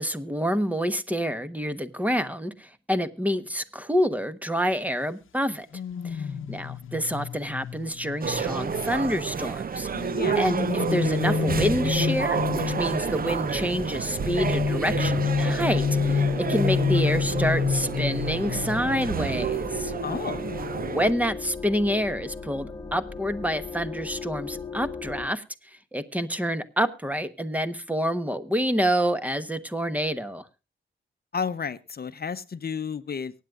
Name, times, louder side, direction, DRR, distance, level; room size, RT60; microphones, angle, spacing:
voice 1, 0.0-5.7 6.0-10.1 10.3-19.9 20.9-25.4 25.9-30.5, equal, 5° right, 12 dB, 1.1 m, -27 dB
sound 1, 5.7-9.3 9.9-13.2 14.2-19.5 19.7-20.0, left 6 dB, 85° left, 0.8 m, -28 dB
sound 2, 8.2-21.1, right 6 dB, 45° right, 0.6 m, -30 dB
voice 2, 10.1-10.5 20.0-20.4 31.3-33.3, left 6 dB, 50° left, 13 dB, 0.7 m, -31 dB
sound 3, 10.6-25.3, left 4 dB, 15° left, 1.5 m, -38 dB
24.0 x 9.3 x 2.4 m, 0.29 s
wide cardioid pair, 105°, 20 cm